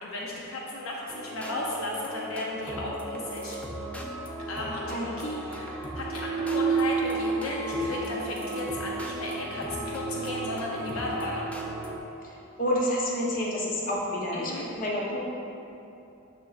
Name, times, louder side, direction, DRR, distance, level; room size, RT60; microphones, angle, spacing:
voice 1, 0.0-3.6 4.5-11.5 14.3-14.7, left 2 dB, 75° left, -2 dB, 0.6 m, -34 dB
sound 1, 1.1-12.0, equal, 5° left, 0.4 m, -40 dB
sound 2, 2.5-12.0, right 4 dB, 80° right, 0.5 m, -33 dB
voice 2, 12.6-15.2, left 1 dB, 40° left, -3 dB, 0.9 m, -29 dB
6.5 x 6.4 x 2.4 m, 2.9 s
head